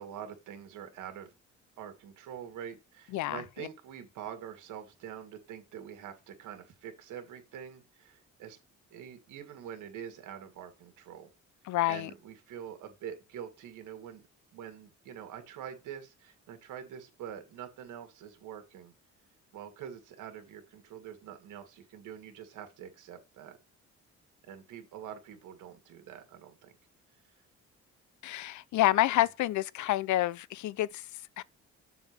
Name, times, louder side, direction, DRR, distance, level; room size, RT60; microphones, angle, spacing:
voice 1, 0.0-1.3 1.8-8.6 8.9-11.3 11.9-14.3 14.5-18.9 19.5-23.6 24.5-26.7, right 9 dB, 85° right, 2.1 m, -45 dB
voice 2, 3.1-3.7 11.7-12.1 28.2-31.1 31.4-31.5, left 15 dB, 70° left, 0.6 m, -28 dB
7.1 x 3.9 x 6.6 m
cardioid pair, 90°, 30 cm